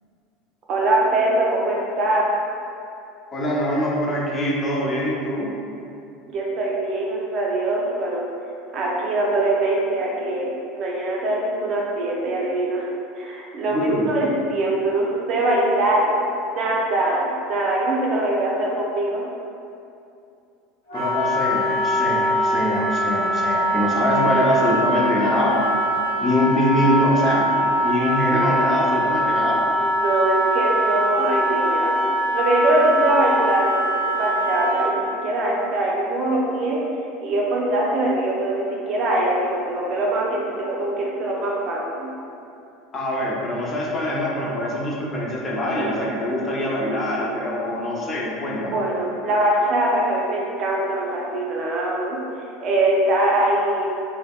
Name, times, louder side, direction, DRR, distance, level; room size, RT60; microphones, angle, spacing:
voice 1, 0.7-2.3 6.3-8.2 8.7-12.9 13.2-16.2 16.5-17.2 17.5-19.2 29.8-31.9 32.3-33.8 34.1-36.8 37.2-42.1 48.7-52.2 52.6-53.8, right 1 dB, 50° right, -3 dB, 0.5 m, -22 dB
voice 2, 3.3-5.5 13.7-14.1 20.9-25.6 26.2-27.5 27.8-29.6 42.9-48.8, left 1 dB, 30° left, -5 dB, 0.6 m, -23 dB
Wind instrument woodwind instrument, 20.9-35.0, equal, 85° left, 0.7 m, -22 dB
3.3 x 2.0 x 2.2 m, 2.6 s
hypercardioid pair, 85°, 0 cm